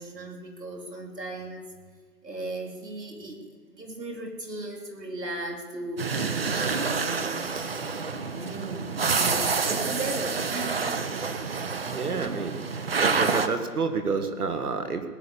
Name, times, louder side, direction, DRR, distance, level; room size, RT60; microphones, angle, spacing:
voice 1, 0.0-1.7 2.2-3.4 3.7-6.2 6.5-7.5 8.3-11.1 12.1-12.5, right 2 dB, 85° right, 2 dB, 3.1 m, -37 dB
sound 1, 6.0-13.5, right 5 dB, 40° right, 0.8 m, -28 dB
voice 2, 11.9-12.5 13.0-15.0, right 4 dB, 65° right, 8 dB, 1.8 m, -28 dB
19.0 x 7.4 x 8.5 m, 1.5 s
figure-of-eight pair, 150°, 48 cm